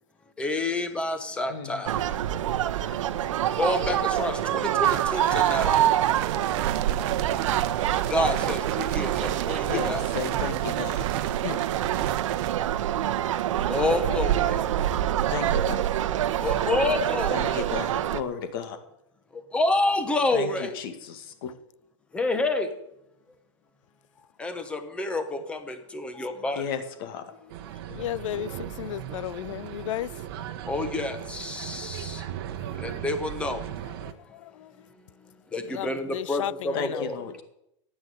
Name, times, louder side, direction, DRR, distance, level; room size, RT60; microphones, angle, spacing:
voice 1, 0.4-2.0 3.6-5.8 8.1-10.0 13.7-14.5 16.4-17.6 19.5-20.8 22.1-22.7 24.4-26.6 30.7-32.2 32.8-33.6 35.5-37.2, left 2 dB, 5° left, 1.1 m, -28 dB
voice 2, 1.5-1.8 5.2-5.3 9.6-11.1 11.4-11.6 15.3-15.8 17.3-18.8 20.3-21.5 26.6-27.3 27.9-28.1 36.7-37.4, left 7 dB, 45° left, 2.0 m, -34 dB
sound 1, 1.9-18.2, right 11 dB, 85° right, 1.0 m, -26 dB
sound 2, 4.8-12.5, right 16 dB, 30° right, 0.6 m, -35 dB
sound 3, 27.5-34.1, right 11 dB, 50° right, 1.1 m, -37 dB
voice 3, 28.0-28.5 28.8-30.1 35.8-35.9 36.1-36.5, left 13 dB, 85° left, 0.4 m, -32 dB
14.0 x 9.5 x 8.4 m
supercardioid pair, 175°, 16 cm